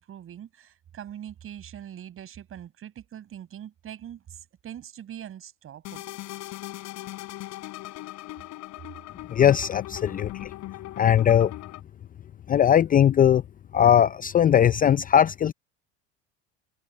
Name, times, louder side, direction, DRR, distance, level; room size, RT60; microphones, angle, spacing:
voice 1, 0.0-6.2, right 10 dB, 40° right, 7.2 m, -42 dB
sound 1, 5.9-11.8, left 17 dB, 55° left, 4.0 m, -39 dB
voice 2, 9.3-10.5 11.0-11.5 12.5-13.4 13.7-15.5, left 9 dB, 25° left, 0.6 m, -19 dB
supercardioid pair, 100°, 34 cm